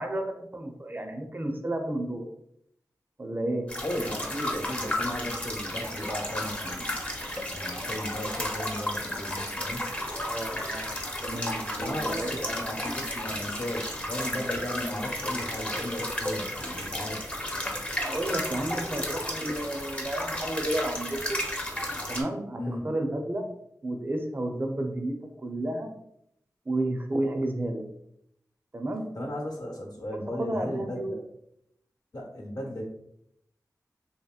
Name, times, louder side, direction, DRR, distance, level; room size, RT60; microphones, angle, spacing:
voice 1, 0.0-2.3 3.2-3.7 10.1-10.9 11.2-12.4 18.0-21.4 22.1-23.4 23.8-25.9 26.7-27.9 28.7-29.0 30.1-31.2, right 1 dB, 30° right, 3 dB, 0.5 m, -32 dB
sound 1, 3.7-22.2, left 1 dB, 20° left, 0.6 m, -33 dB
voice 2, 3.8-7.0 7.5-9.9 11.8-17.2 22.6-22.9 29.1-31.2 32.1-32.8, left 1 dB, 65° left, -1 dB, 0.9 m, -36 dB
2.9 x 2.8 x 2.3 m, 0.77 s
wide cardioid pair, 55°, 7 cm